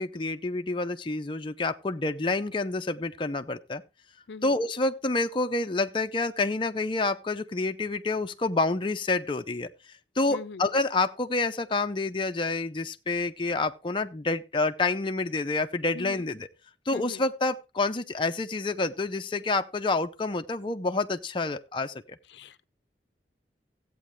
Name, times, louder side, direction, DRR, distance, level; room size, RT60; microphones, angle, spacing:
voice 1, 0.0-3.8 4.4-9.7 10.2-16.5 16.9-22.2, left 3 dB, 30° left, 0.6 m, -28 dB
voice 2, 10.3-10.6 15.9-16.3 16.9-17.2 22.3-22.6, left 4 dB, 75° left, 0.6 m, -41 dB
14.5 x 8.4 x 3.2 m
head